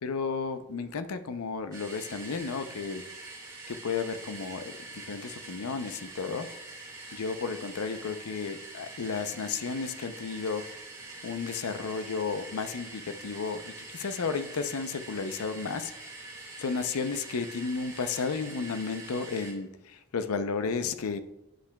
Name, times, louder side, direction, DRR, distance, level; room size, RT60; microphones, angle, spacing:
voice 1, 0.0-3.0 3.7-6.5 7.1-10.7 11.2-15.9 16.6-21.2, left 5 dB, 80° left, 10 dB, 0.6 m, -33 dB
sound 1, 1.7-19.5, right 2 dB, 15° right, 1.7 m, -45 dB
10.0 x 5.8 x 2.3 m, 0.93 s
head